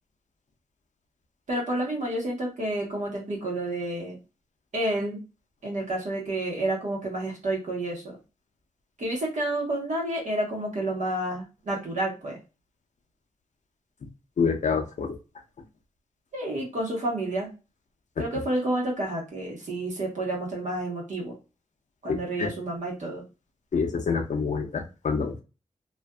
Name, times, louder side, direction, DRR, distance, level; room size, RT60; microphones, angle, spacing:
voice 1, 1.5-4.2 4.7-5.2 5.6-8.2 9.0-12.4 16.3-17.5 18.2-21.3 22.0-23.2, right 1 dB, 70° right, -1 dB, 1.2 m, -30 dB
voice 2, 14.4-15.1 22.1-22.5 23.7-25.4, left 5 dB, 65° left, 5 dB, 0.6 m, -27 dB
2.5 x 2.5 x 2.3 m, 0.30 s
cardioid pair, 65°, 13 cm